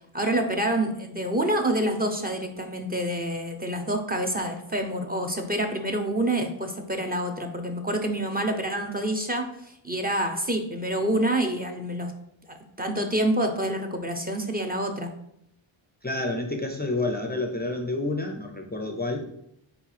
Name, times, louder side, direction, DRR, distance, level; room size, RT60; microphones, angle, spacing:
voice 1, 0.1-12.1 12.5-15.1, right 1 dB, 20° right, 3 dB, 0.7 m, -27 dB
voice 2, 16.0-19.3, left 2 dB, 20° left, 3 dB, 0.6 m, -29 dB
4.6 x 3.9 x 5.6 m, 0.76 s
wide cardioid pair, 110°, 49 cm